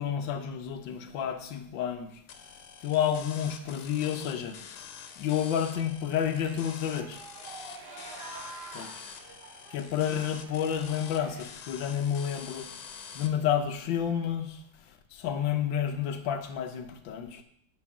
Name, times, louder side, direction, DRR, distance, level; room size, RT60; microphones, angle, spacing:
voice 1, 0.0-2.2 2.8-4.9 5.2-7.2 8.7-9.0 9.7-12.7 13.1-17.4, left 9 dB, 65° left, 6 dB, 1.5 m, -30 dB
sound 1, 2.3-13.3, left 7 dB, 85° left, 1.7 m, -46 dB
sound 2, 6.3-11.4, right 3 dB, 55° right, 1.8 m, -47 dB
9.1 x 5.0 x 6.0 m, 0.67 s
omnidirectional pair, 2.3 m